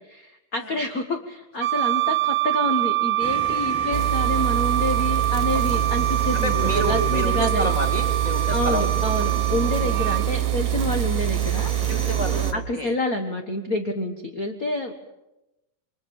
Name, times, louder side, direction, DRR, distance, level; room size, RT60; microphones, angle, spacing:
voice 1, 0.1-7.7 8.5-11.7 12.3-14.9, left 1 dB, 45° left, 5 dB, 1.1 m, -28 dB
Wind instrument woodwind instrument, 1.6-10.3, right 12 dB, 60° right, 1.7 m, -25 dB
sound 1, 3.2-12.5, right 2 dB, 10° left, 4.1 m, -35 dB
sound 2, 3.9-12.5, right 16 dB, 80° right, 2.6 m, -25 dB
voice 2, 6.4-8.9 11.9-12.9, equal, 15° right, 5 dB, 2.4 m, -29 dB
28.5 x 24.5 x 7.2 m, 0.94 s
omnidirectional pair, 3.8 m